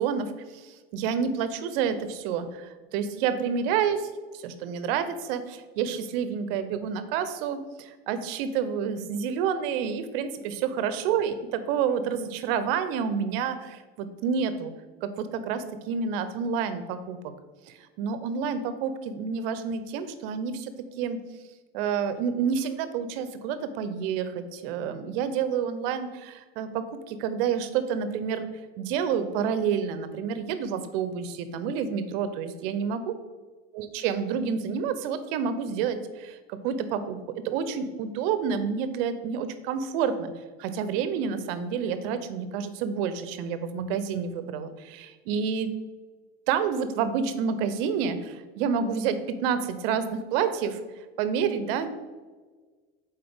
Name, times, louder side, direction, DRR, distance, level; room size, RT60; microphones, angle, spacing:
voice 1, 0.0-14.7 15.0-17.2 18.0-21.2 21.7-28.5 28.8-33.1 33.7-40.3 40.6-45.7 46.5-50.8 51.2-51.9, right 7 dB, 65° right, 11 dB, 0.7 m, -29 dB
7.7 x 4.2 x 3.5 m, 1.4 s
hypercardioid pair, 80°, 31 cm